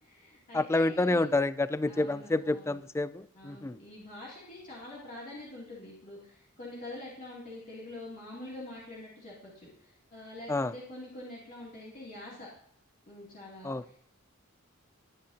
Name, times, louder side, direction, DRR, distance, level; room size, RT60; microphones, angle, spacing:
voice 1, 0.0-1.2 1.9-2.8 3.3-12.5 13.1-14.0, left 1 dB, 40° left, -6 dB, 2.8 m, -45 dB
voice 2, 0.5-3.8 10.5-10.7 13.6-13.8, left 2 dB, 15° left, 16 dB, 0.3 m, -28 dB
20.0 x 8.6 x 2.8 m, 0.66 s
head